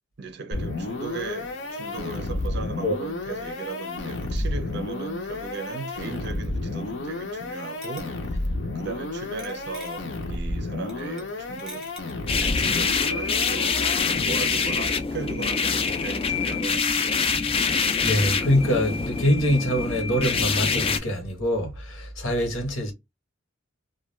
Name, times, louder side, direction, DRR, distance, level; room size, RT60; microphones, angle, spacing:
voice 1, 0.2-8.4 8.7-12.0 12.4-13.8 14.2-17.3, right 5 dB, 55° right, 0.5 m, -37 dB
sound 1, 0.5-14.6, left 2 dB, 65° left, 0.6 m, -31 dB
sound 2, 6.0-6.2 7.8-8.4 9.4-10.1 10.9-11.3 11.6-12.1, right 2 dB, 5° right, 0.7 m, -45 dB
sound 3, 12.3-21.0, left 5 dB, 30° left, 0.3 m, -25 dB
voice 2, 18.0-22.9, equal, 85° left, 1.0 m, -24 dB
2.3 x 2.2 x 3.0 m
head